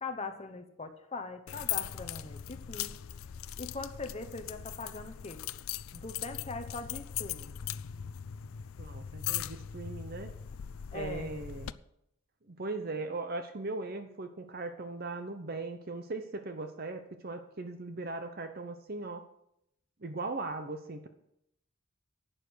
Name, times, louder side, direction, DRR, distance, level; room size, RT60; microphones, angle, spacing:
voice 1, 0.0-2.9 3.6-5.4 5.9-7.5 10.9-11.3, left 3 dB, 30° left, 7 dB, 1.0 m, -41 dB
sound 1, 1.5-11.7, left 10 dB, 85° left, 0.4 m, -39 dB
voice 2, 8.8-10.3 10.9-11.7 12.5-19.2 20.0-21.1, right 3 dB, 45° right, 8 dB, 0.8 m, -39 dB
11.5 x 8.9 x 6.3 m, 0.78 s
head